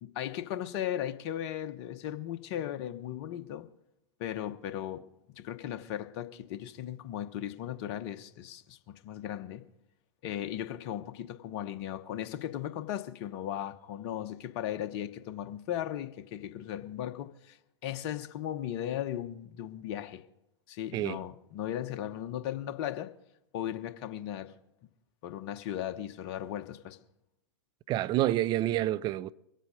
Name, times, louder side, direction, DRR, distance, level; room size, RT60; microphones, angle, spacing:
voice 1, 0.0-3.7 4.2-5.0 5.4-9.6 10.2-17.6 17.8-20.2 20.7-23.1 23.5-24.5 25.2-27.0, left 11 dB, 45° left, 1.0 m, -37 dB
voice 2, 27.9-29.3, right 14 dB, 30° right, 0.5 m, -28 dB
23.5 x 8.0 x 5.0 m
hypercardioid pair, 110°, 14 cm